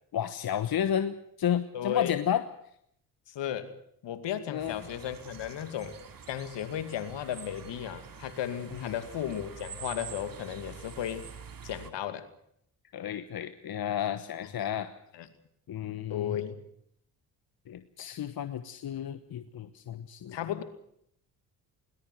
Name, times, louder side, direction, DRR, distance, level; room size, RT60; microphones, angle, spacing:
voice 1, 0.1-2.4 4.5-4.8 8.8-9.0 12.9-14.9 15.7-16.4 17.7-20.4, left 9 dB, 50° left, 11 dB, 1.2 m, -32 dB
voice 2, 1.7-2.1 3.3-3.8 4.0-6.0 6.3-11.3 11.6-12.3 14.6-14.7 15.1-15.3 16.1-16.6 20.3-20.6, left 10 dB, 65° left, 10 dB, 2.4 m, -35 dB
sound 1, 4.6-11.9, right 6 dB, 45° right, 2.6 m, -46 dB
20.5 x 19.5 x 7.8 m, 0.71 s
hypercardioid pair, 55°, 46 cm